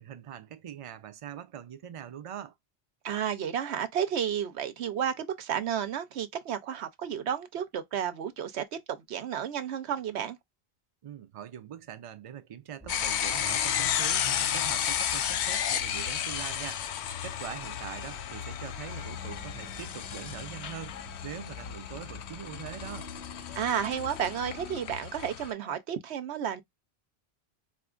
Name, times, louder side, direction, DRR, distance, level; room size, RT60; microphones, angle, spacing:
voice 1, 0.0-2.5 11.0-23.1, right 9 dB, 50° right, 0.4 m, -43 dB
voice 2, 3.0-10.4 23.5-26.6, right 8 dB, 90° right, 1.0 m, -32 dB
sound 1, 12.8-24.8, left 1 dB, 10° right, 0.8 m, -48 dB
sound 2, 12.9-25.5, left 9 dB, 90° left, 0.8 m, -33 dB
4.2 x 2.4 x 2.4 m
omnidirectional pair, 1.1 m